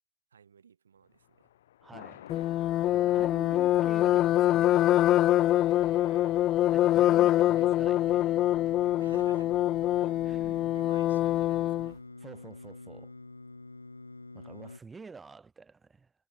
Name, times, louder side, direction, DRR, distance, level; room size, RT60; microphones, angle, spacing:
voice 1, 0.3-1.5 2.7-3.0 5.4-6.7 8.9-9.6 9.9-12.0 14.4-14.5, right 7 dB, 75° right, 3.9 m, -55 dB
Thunder, 1.1-12.4, left 12 dB, 60° left, 6.5 m, -55 dB
voice 2, 1.8-2.3 2.9-4.7 6.7-8.6 10.0-10.7 12.2-13.1 14.3-16.1, right 4 dB, 15° right, 3.3 m, -49 dB
sound 1, 2.3-11.9, left 14 dB, 35° left, 0.5 m, -24 dB
Singing, 7.6-14.8, left 3 dB, 85° left, 3.1 m, -46 dB
figure-of-eight pair, 95°, 0 cm